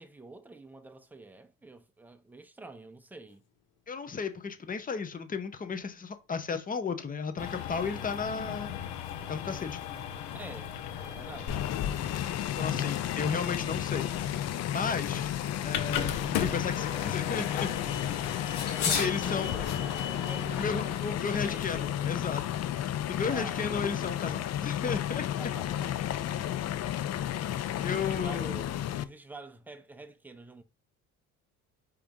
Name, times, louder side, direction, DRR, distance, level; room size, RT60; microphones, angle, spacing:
voice 1, 0.0-3.4 10.3-10.7 11.0-12.2 18.8-22.3 23.3-23.6 25.4-26.6 27.6-30.6, right 2 dB, 5° right, 0.6 m, -47 dB
sound 1, 3.3-19.1, left 6 dB, 60° left, 1.6 m, -43 dB
voice 2, 3.9-8.8 9.2-9.8 12.6-14.1 14.7-15.3 15.6-17.7 19.0-19.6 20.5-22.4 23.0-25.2 27.8-28.5, left 5 dB, 20° left, 0.8 m, -34 dB
sound 2, 7.4-21.0, left 9 dB, 85° left, 0.8 m, -37 dB
sound 3, 11.5-29.0, left 11 dB, 45° left, 0.5 m, -33 dB
4.9 x 3.0 x 3.6 m
supercardioid pair, 95°, 37 cm